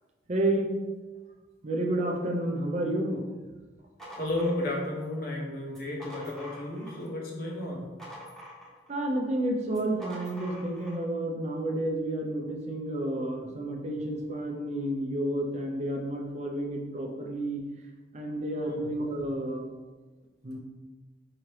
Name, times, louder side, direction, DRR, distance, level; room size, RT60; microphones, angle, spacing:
voice 1, 0.3-0.7 1.6-3.2 8.9-17.6 18.1-19.6 20.4-20.6, right 1 dB, 35° right, 1 dB, 0.5 m, -30 dB
sound 1, 3.7-5.2 5.7-7.1 7.5-9.0 9.7-11.0, equal, ahead, 0.9 m, -46 dB
voice 2, 4.2-7.9 18.6-18.8, left 1 dB, 50° left, -2 dB, 0.9 m, -33 dB
4.8 x 2.8 x 3.1 m, 1.2 s
head